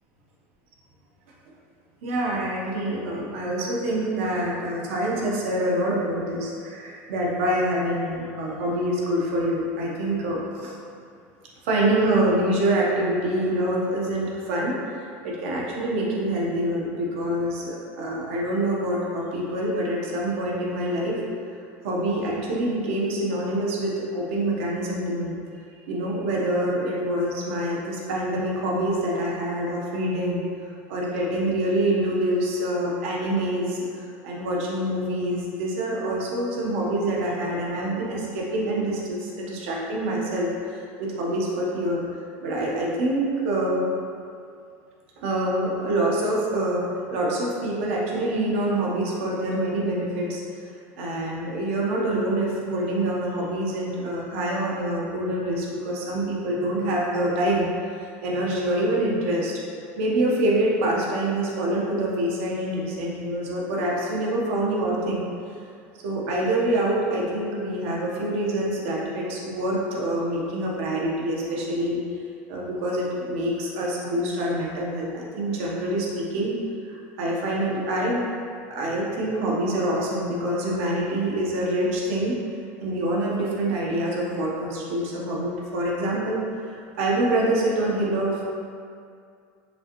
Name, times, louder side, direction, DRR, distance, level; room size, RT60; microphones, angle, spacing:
voice 1, 2.0-10.7 11.6-14.8 15.2-21.2 21.8-25.3 25.9-30.4 30.9-42.0 42.4-43.9 45.2-46.9 47.1-50.4 51.0-57.7 57.9-59.5 60.0-65.3 66.0-72.0 72.5-76.5 76.9-78.2 78.7-82.4 82.8-88.4, right 1 dB, 85° right, -3 dB, 1.0 m, -26 dB
5.3 x 3.3 x 3.0 m, 2.4 s
cardioid pair, 160°, 7 cm